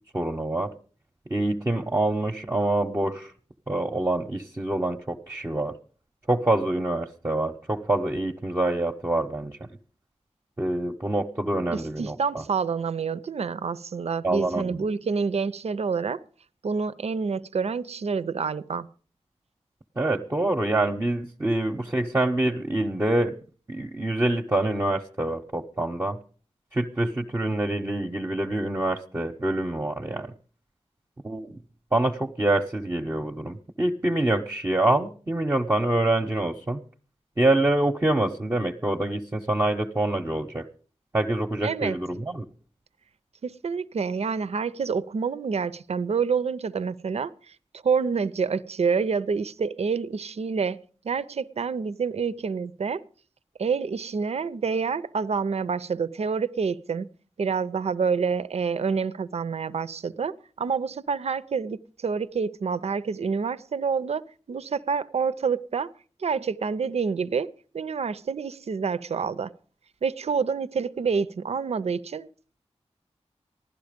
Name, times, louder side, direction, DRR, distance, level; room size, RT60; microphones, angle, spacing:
voice 1, 0.1-0.7 1.3-3.3 3.7-5.7 6.3-9.6 10.6-12.4 14.2-14.8 20.0-23.3 23.7-26.2 26.7-30.3 31.2-31.6 31.9-36.8 37.4-40.6 41.1-42.4, right 2 dB, 20° right, 0.8 m, -26 dB
voice 2, 11.7-16.2 16.6-18.9 41.6-42.0 43.4-47.3 47.8-53.0 53.6-57.1 57.4-65.9 66.2-69.5 70.0-72.3, right 5 dB, 65° right, 0.6 m, -28 dB
15.5 x 11.5 x 5.1 m
wide cardioid pair, 65°, 12 cm